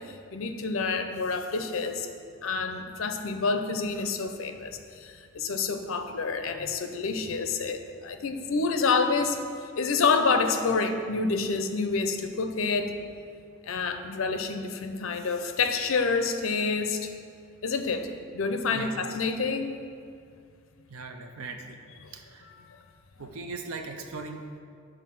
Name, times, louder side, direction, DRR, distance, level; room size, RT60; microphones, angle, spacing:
voice 1, 0.3-2.1 2.4-9.4 9.8-12.9 13.6-17.1 17.6-18.1 18.3-19.7 22.0-22.1 22.4-22.8 23.2-23.3, left 4 dB, 75° left, 7 dB, 0.6 m, -28 dB
voice 2, 20.9-21.8 22.1-22.5 23.2-24.6, right 3 dB, 90° right, 4 dB, 0.6 m, -39 dB
8.1 x 3.8 x 5.9 m, 2.3 s
head